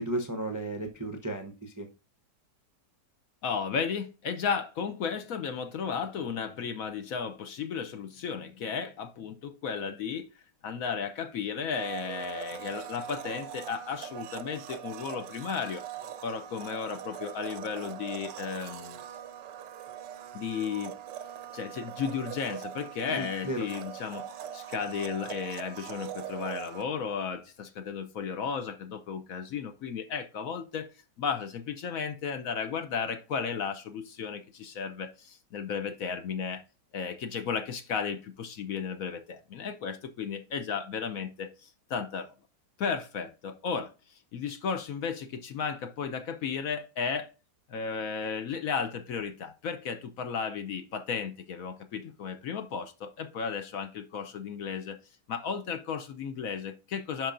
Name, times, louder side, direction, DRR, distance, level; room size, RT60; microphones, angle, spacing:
voice 1, 0.0-1.9 23.0-23.6, right 1 dB, 20° right, 0.4 m, -34 dB
voice 2, 3.4-10.3 10.6-15.8 16.2-19.0 20.3-20.9 21.5-24.2 24.5-30.9 31.2-36.6 36.9-42.3 42.8-47.3 47.7-55.0 55.3-57.3, left 6 dB, 65° left, 1.0 m, -34 dB
Domestic sounds home sounds, 11.7-26.8, right 10 dB, 85° right, 1.3 m, -41 dB
11.0 x 4.6 x 2.5 m
omnidirectional pair, 1.8 m